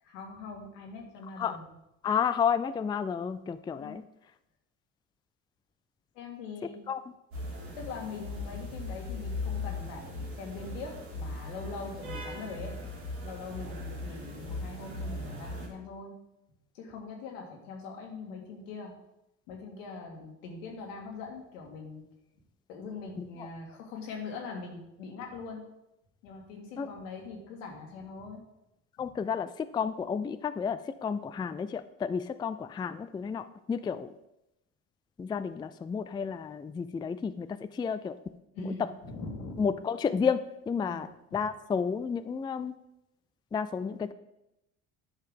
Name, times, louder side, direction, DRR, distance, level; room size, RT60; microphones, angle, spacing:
voice 1, 0.0-1.7 3.8-4.0 6.1-6.8 7.8-12.7 13.2-16.2 16.7-18.9 19.5-22.0 22.7-25.6 26.2-28.4 38.6-39.6 40.9-41.1, left 4 dB, 85° left, 1 dB, 1.9 m, -42 dB
voice 2, 2.0-4.0 6.9-7.0 23.2-23.5 26.8-26.9 29.0-34.1 35.2-38.2 38.6-38.9 39.6-40.4 40.7-41.1 41.3-42.7 43.5-44.1, left 6 dB, 15° left, 12 dB, 0.3 m, -31 dB
sound 1, 7.3-15.7, left 2 dB, 80° right, 2.7 m, -38 dB
9.9 x 5.7 x 3.7 m, 0.87 s
hypercardioid pair, 70°, 37 cm